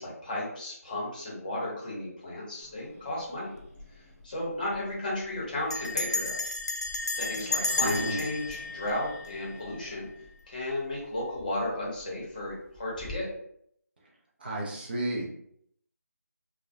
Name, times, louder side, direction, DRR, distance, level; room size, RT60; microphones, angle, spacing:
voice 1, 0.0-3.5 4.2-6.4 7.2-10.1 10.5-13.3, left 1 dB, 30° left, -5 dB, 0.8 m, -34 dB
Growling, 2.6-13.1, left 2 dB, 5° right, 0.7 m, -53 dB
Bell, 3.6-3.9 4.2-4.3 4.5-4.9 5.7-9.8, left 3 dB, 90° left, 0.4 m, -32 dB
voice 2, 7.8-8.2 14.4-15.3, right 1 dB, 35° right, -4 dB, 0.5 m, -32 dB
2.2 x 2.0 x 2.7 m, 0.69 s
figure-of-eight pair, 165°, 9 cm